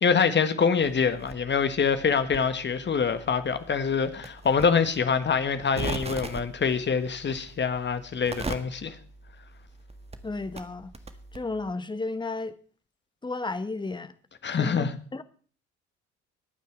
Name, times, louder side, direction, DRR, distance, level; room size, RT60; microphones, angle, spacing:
voice 1, 0.0-9.0 14.4-14.9, left 6 dB, 30° left, 1.6 m, -25 dB
sound 1, 0.8-11.7, right 3 dB, 20° right, 1.6 m, -41 dB
voice 2, 10.2-10.9 11.3-12.5 13.2-14.1 14.5-15.2, left 3 dB, 15° left, 1.2 m, -33 dB
21.5 x 9.1 x 4.6 m
figure-of-eight pair, 55°, 35 cm